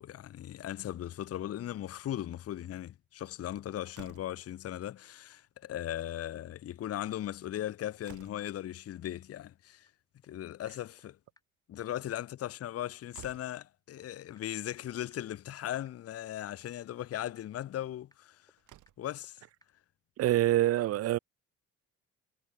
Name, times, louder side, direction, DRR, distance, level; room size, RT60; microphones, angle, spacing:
voice 1, 0.0-9.9 10.2-11.2 11.7-18.4 19.0-19.4, left 12 dB, 50° left, 0.7 m, -38 dB
Slam, 3.9-4.5 5.8-6.1 6.5-6.6 6.8-6.9 7.5-8.6 10.4-11.1 12.7-12.8 13.1-13.6 14.7-14.8 15.2-15.3 16.1-16.4 18.1-18.2 18.6-19.2, right 13 dB, 80° right, 4.2 m, -55 dB
sound 1, 9.9-10.0 10.2-10.3 10.6-10.7 11.0-11.1 11.4-11.5 11.7-11.8 12.1-12.2 12.5-12.6 12.9-13.0 13.2-13.3 13.6-13.7 14.0-14.1 14.4-14.5 14.7-14.8 15.1-15.2 15.5-15.6 15.9-16.0 16.2-16.3 16.6-16.7 17.0-17.1 17.4-17.5 17.7-17.8 18.1-18.2 18.5-18.6 18.9-19.0 19.2-19.3 19.6-19.7, left 2 dB, 10° left, 7.8 m, -64 dB
voice 2, 20.2-21.2, right 14 dB, 55° right, 0.4 m, -26 dB
cardioid pair, 90°, 30 cm